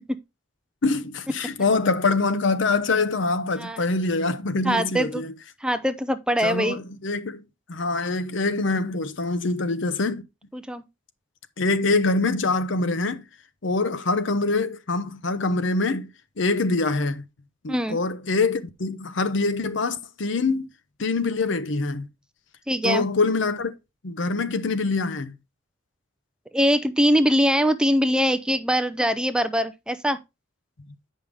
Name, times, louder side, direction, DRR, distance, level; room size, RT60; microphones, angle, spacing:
voice 1, 0.8-5.3 6.4-10.2 11.6-13.3 13.6-16.1 16.4-17.2 17.6-20.7 21.0-22.1 22.8-23.7 24.0-25.3, left 3 dB, 65° left, 0.7 m, -24 dB
voice 2, 4.6-5.2 5.6-6.8 10.5-10.8 17.7-18.0 22.7-23.1 26.5-30.2, equal, 5° right, 0.4 m, -22 dB
8.3 x 5.5 x 3.4 m
head